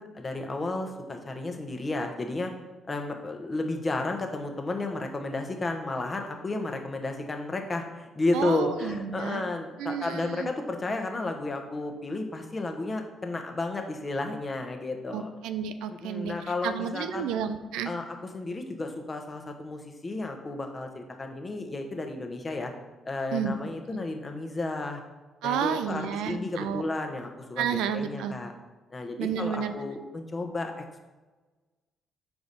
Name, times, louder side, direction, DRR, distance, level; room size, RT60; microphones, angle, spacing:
voice 1, 0.0-2.5 2.9-15.3 15.9-17.3 17.8-22.7 23.1-25.0 25.4-28.5 28.9-30.8, left 2 dB, 35° left, 4 dB, 1.0 m, -32 dB
voice 2, 8.3-9.4 9.8-10.5 15.1-16.4 16.6-17.9 23.3-23.6 23.9-24.0 25.4-26.8 27.6-28.4 29.2-29.7, right 8 dB, 70° right, 10 dB, 0.3 m, -31 dB
5.2 x 4.7 x 4.1 m, 1.2 s
hypercardioid pair, 45°, 0 cm